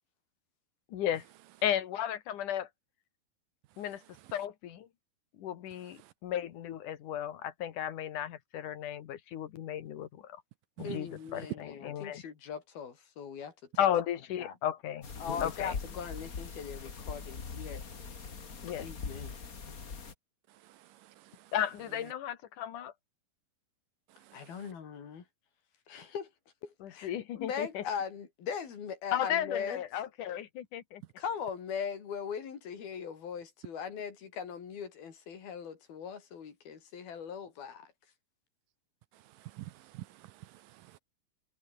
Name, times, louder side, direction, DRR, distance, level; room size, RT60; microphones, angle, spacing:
voice 1, 0.9-1.3 1.6-2.7 3.8-4.0 4.3-4.9 5.3-10.4 10.8-12.2 13.8-15.1 15.4-15.8 18.6-18.9 21.5-22.9 26.8-27.8 29.1-31.0, left 10 dB, 65° left, 2.8 m, -34 dB
voice 2, 10.8-13.5 14.4-14.5 15.2-17.8 18.8-19.4 24.3-25.2 25.9-26.3 26.6-29.8 31.2-37.9, left 7 dB, 80° left, 5.5 m, -40 dB
sound 1, 15.0-20.1, left 5 dB, 30° left, 1.9 m, -41 dB
voice 3, 20.6-21.5 24.2-24.6 39.1-41.0, right 16 dB, 75° right, 2.2 m, -49 dB
omnidirectional pair, 4.2 m